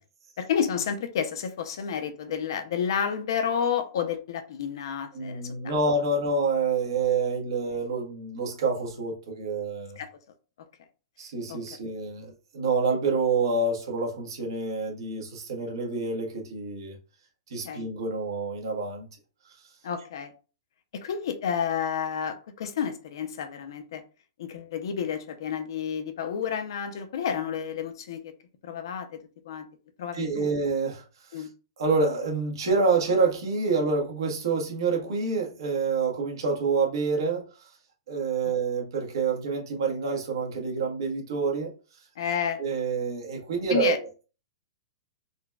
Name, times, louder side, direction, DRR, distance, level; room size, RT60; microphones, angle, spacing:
voice 1, 0.4-5.7 10.0-10.1 11.5-11.6 17.6-17.8 19.8-20.3 20.9-24.0 24.4-28.3 28.6-29.1 29.4-29.7 30.0-30.5 31.3-31.5 38.4-38.5 42.2-42.6 43.7-44.0, left 7 dB, 60° left, 0.5 m, -30 dB
voice 2, 5.1-10.0 11.2-17.0 17.5-19.1 30.1-31.5 31.8-37.7 38.1-41.7 42.6-44.2, right 4 dB, 65° right, 1.1 m, -27 dB
3.9 x 2.2 x 2.3 m
hypercardioid pair, 165°, 3 cm